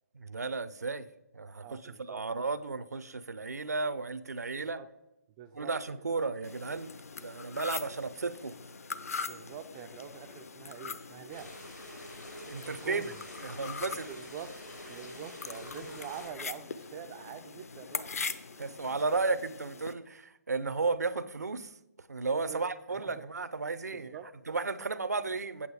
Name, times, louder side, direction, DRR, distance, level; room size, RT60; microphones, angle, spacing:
voice 1, 0.1-1.1 1.3-4.8 5.5-6.9 7.2-8.5 12.5-13.1 13.4-14.1 18.6-21.7 22.1-24.2 24.5-25.7, right 4 dB, 70° right, 15 dB, 0.7 m, -34 dB
voice 2, 1.6-2.2 4.5-4.9 5.4-5.7 9.3-11.6 12.6-13.2 13.9-14.5 14.9-18.1 18.8-19.2 22.3-23.2 23.9-24.3 24.8-24.9, right 8 dB, 20° right, 8 dB, 0.3 m, -45 dB
sound 1, 6.4-19.9, left 5 dB, 60° left, 0.7 m, -42 dB
sound 2, 11.3-16.3, left 1 dB, 85° left, 3.4 m, -47 dB
8.6 x 7.9 x 4.7 m, 0.92 s
figure-of-eight pair, 145°, 9 cm